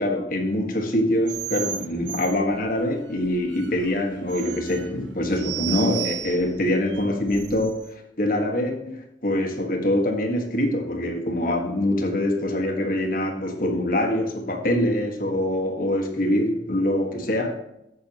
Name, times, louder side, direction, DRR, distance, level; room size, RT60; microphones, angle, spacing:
voice 1, 0.0-17.5, left 1 dB, 50° left, 1.6 m, -24 dB
sound 1, 1.2-7.9, right 13 dB, 80° right, 0.7 m, -35 dB
11.5 x 8.0 x 3.0 m
head